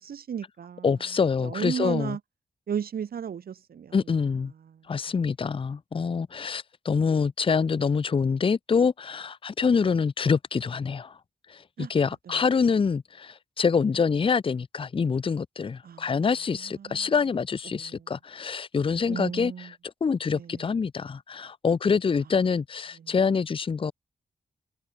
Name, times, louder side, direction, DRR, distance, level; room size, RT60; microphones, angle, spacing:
voice 1, 0.0-0.9 1.4-2.2 2.7-4.0 4.6-4.8 11.8-11.9 15.8-16.1 16.6-17.1 17.7-18.1 19.1-19.7 20.3-20.6 23.0-23.1, right 8 dB, 80° right, 3.1 m, -34 dB
voice 2, 0.8-2.2 3.9-4.5 4.9-11.2 11.5-19.7 20.0-23.9, left 5 dB, 35° left, 0.7 m, -26 dB
wide cardioid pair, 130°, 15 cm